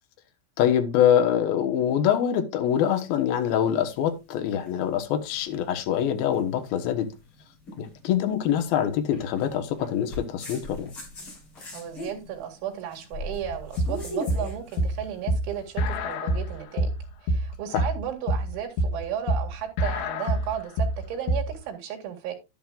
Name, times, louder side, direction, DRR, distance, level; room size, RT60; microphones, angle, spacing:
voice 1, 0.6-7.1 7.8-10.9 17.7-17.8, left 9 dB, 65° left, 2.7 m, -24 dB
sound 1, 2.7-15.9, left 1 dB, 30° left, 4.9 m, -42 dB
voice 2, 11.7-16.9 17.2-22.3, right 9 dB, 80° right, 4.5 m, -34 dB
sound 2, 13.4-21.6, right 1 dB, 85° left, 4.1 m, -26 dB
11.0 x 10.5 x 2.4 m
omnidirectional pair, 5.3 m